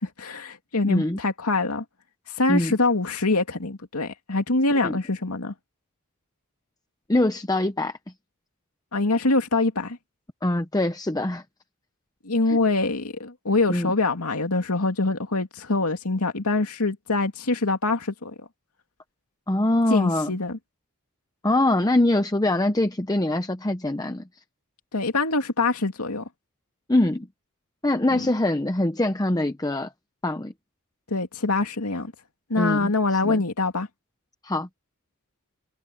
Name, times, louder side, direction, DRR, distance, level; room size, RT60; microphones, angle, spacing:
voice 1, 0.0-1.8 2.4-5.5 8.9-10.0 12.2-18.3 19.9-20.6 24.9-26.3 28.1-28.3 31.1-32.1 32.5-33.9, left 3 dB, 85° left, 2.5 m, -24 dB
voice 2, 0.8-1.2 2.5-2.8 4.8-4.9 7.1-8.0 10.4-11.4 12.5-12.6 13.7-13.9 19.5-20.4 21.4-24.2 26.9-27.3 27.8-29.9 30.2-30.5 32.6-32.9 33.2-33.4 34.4-34.7, left 1 dB, 15° left, 0.8 m, -23 dB
head